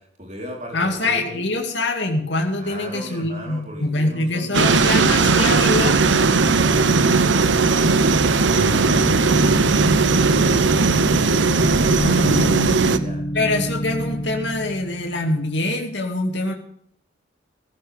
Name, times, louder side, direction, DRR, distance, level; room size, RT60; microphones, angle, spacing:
voice 1, 0.0-1.5 2.5-4.9 6.3-10.7 10.9-13.2, equal, 40° right, 0 dB, 4.2 m, -37 dB
voice 2, 0.7-6.2 11.5-11.6 11.9-12.4 13.3-16.5, left 2 dB, 75° left, 3 dB, 2.4 m, -24 dB
sound 1, 4.5-13.0, right 4 dB, 85° right, 0.9 m, -17 dB
sound 2, 8.6-15.6, equal, 60° left, 1.4 m, -28 dB
16.0 x 14.5 x 3.6 m, 0.67 s
head